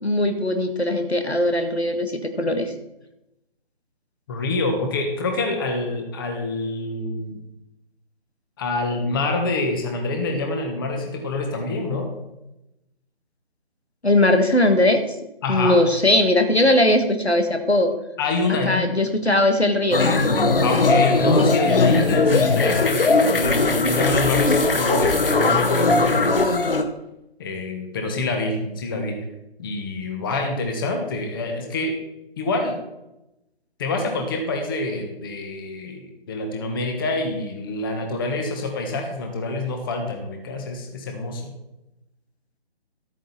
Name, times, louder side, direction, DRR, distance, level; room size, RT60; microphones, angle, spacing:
voice 1, 0.0-2.7 14.0-15.0 15.5-17.9 18.7-20.0, left 1 dB, 90° left, 7 dB, 1.8 m, -19 dB
voice 2, 4.3-7.4 8.6-12.1 15.4-15.8 18.2-18.9 20.6-26.6 27.4-29.1 29.6-31.9 32.4-32.7 33.8-41.5, left 2 dB, 20° left, 4 dB, 1.5 m, -26 dB
sound 1, 19.9-26.8, left 3 dB, 60° left, 1.3 m, -19 dB
13.0 x 9.1 x 4.2 m, 0.91 s
figure-of-eight pair, 145°, 31 cm